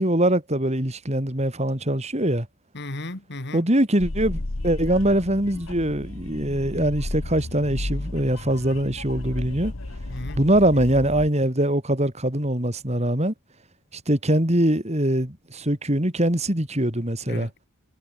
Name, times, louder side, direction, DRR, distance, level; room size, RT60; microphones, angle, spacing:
voice 1, 0.0-2.5 3.5-9.7 10.3-13.3 14.1-17.5, right 1 dB, 30° right, 3.5 m, -23 dB
voice 2, 2.7-3.6 10.1-10.4 17.3-17.6, left 2 dB, 50° left, 2.5 m, -35 dB
sound 1, 4.0-11.3, left 2 dB, 70° left, 1.5 m, -33 dB
head